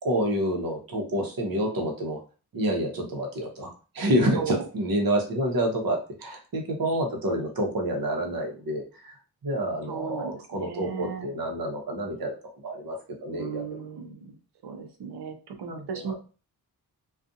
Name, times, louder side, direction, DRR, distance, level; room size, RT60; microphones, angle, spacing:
voice 1, 0.0-2.2 2.5-9.2 9.4-12.4 12.6-13.8 15.7-16.1, right 1 dB, 60° right, 1 dB, 0.9 m, -28 dB
voice 2, 4.3-4.7 9.9-11.3 13.3-14.3 14.6-16.1, right 6 dB, 90° right, 6 dB, 0.6 m, -36 dB
2.5 x 2.3 x 2.6 m, 0.35 s
cardioid pair, 70°, 39 cm